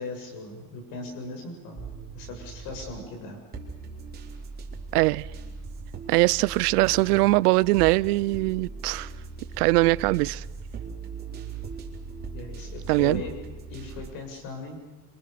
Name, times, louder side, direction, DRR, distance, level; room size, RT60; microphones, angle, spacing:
voice 1, 0.0-1.9 2.1-3.4 12.3-13.3 13.7-14.8, left 3 dB, 50° left, 7.3 m, -38 dB
sound 1, 1.8-3.1 3.5-14.1, right 5 dB, 20° right, 4.0 m, -39 dB
voice 2, 4.9-5.2 6.1-9.1 9.6-10.4 12.9-13.2, right 21 dB, 85° right, 0.8 m, -22 dB
27.0 x 26.5 x 6.8 m
cardioid pair, 160°, 46 cm